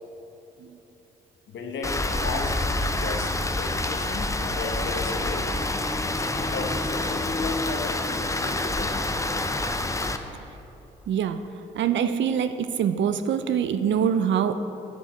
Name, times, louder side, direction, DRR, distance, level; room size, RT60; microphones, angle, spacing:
voice 1, 1.5-5.5 6.0-8.0 8.4-9.1, left 3 dB, 65° left, 2 dB, 1.3 m, -35 dB
Rain, 1.8-10.2, left 2 dB, 15° left, 0.7 m, -27 dB
voice 2, 11.1-11.4 11.7-14.5, right 8 dB, 60° right, 11 dB, 0.6 m, -24 dB
12.5 x 7.6 x 4.4 m, 3.0 s
hypercardioid pair, 40°, 21 cm